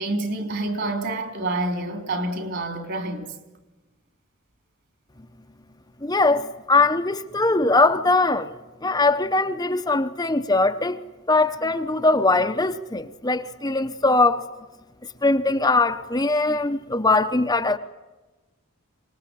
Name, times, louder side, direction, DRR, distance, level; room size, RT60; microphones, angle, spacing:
voice 1, 0.0-3.4, right 2 dB, 50° right, 3.5 m, -28 dB
voice 2, 6.0-8.5 8.8-11.0 11.3-14.4 15.2-17.8, left 3 dB, 15° left, 0.9 m, -21 dB
25.5 x 20.0 x 9.9 m
head